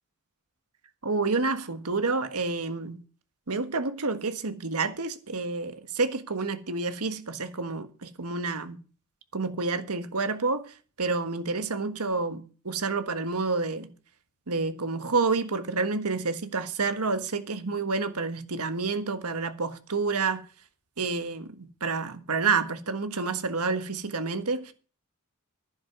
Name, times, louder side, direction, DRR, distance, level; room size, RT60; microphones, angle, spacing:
voice 1, 1.0-3.0 3.5-8.8 9.3-13.9 14.5-20.4 21.0-24.7, right 4 dB, 90° right, 1.5 m, -29 dB
11.5 x 10.0 x 6.0 m
head